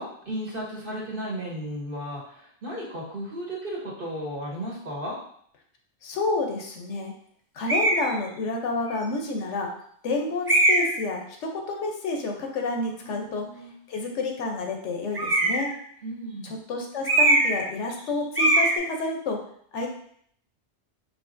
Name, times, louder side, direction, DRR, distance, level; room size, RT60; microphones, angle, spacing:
voice 1, 0.0-5.2 13.0-13.7 16.0-16.5, equal, 50° right, -4 dB, 1.3 m, -34 dB
voice 2, 6.0-7.1 7.5-9.7 10.0-13.5 13.9-15.8 16.4-19.4 19.7-19.9, left 3 dB, 90° left, 2 dB, 1.1 m, -29 dB
sound 1, 7.7-8.1 8.9-9.0 10.5-11.0 15.1-15.7 17.0-17.6 17.9-18.1 18.4-18.8, right 2 dB, 25° right, 0.6 m, -21 dB
4.9 x 3.0 x 2.6 m, 0.65 s
omnidirectional pair, 1.2 m